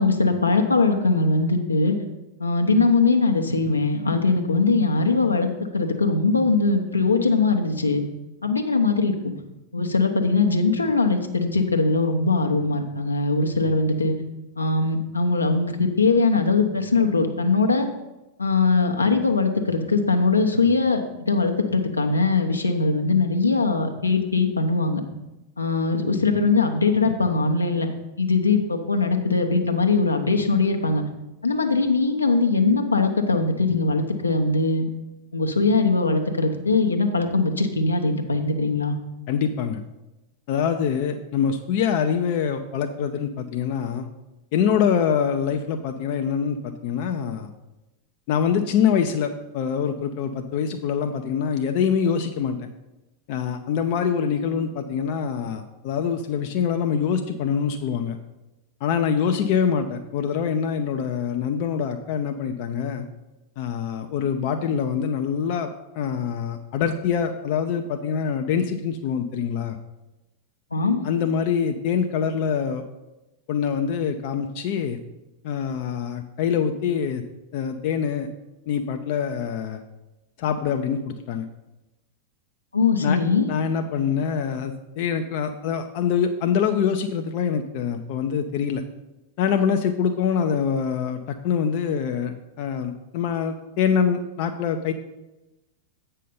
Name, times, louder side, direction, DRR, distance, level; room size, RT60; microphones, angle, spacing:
voice 1, 0.0-2.0 2.4-5.5 5.7-8.0 8.4-9.3 9.7-14.1 14.6-17.9 18.4-25.0 25.6-27.9 28.2-31.0 31.4-34.8 35.3-39.0 70.7-71.0 82.7-83.5, left 3 dB, 80° left, 4 dB, 0.9 m, -21 dB
voice 2, 39.3-39.8 40.5-44.1 44.5-47.5 48.3-52.7 53.3-58.2 58.8-63.1 63.6-65.7 65.9-69.8 71.0-72.8 73.5-75.0 75.4-77.2 77.5-78.3 78.7-79.8 80.4-81.5 83.0-83.2 83.5-88.8 89.4-94.9, left 7 dB, 45° left, 6 dB, 0.5 m, -24 dB
8.3 x 5.6 x 5.4 m, 1.0 s
figure-of-eight pair, 90°, 0 cm